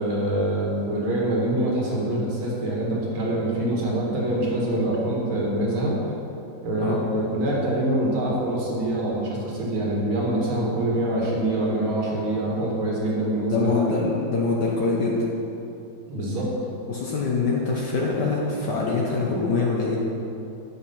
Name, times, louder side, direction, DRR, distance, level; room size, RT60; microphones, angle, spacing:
voice 1, 0.0-6.1 6.6-13.7 16.1-16.5, right 1 dB, 85° right, -4 dB, 2.8 m, -25 dB
voice 2, 13.5-15.2 16.9-20.0, left 4 dB, 65° left, -4 dB, 1.6 m, -24 dB
10.5 x 7.2 x 5.6 m, 2.9 s
omnidirectional pair, 2.2 m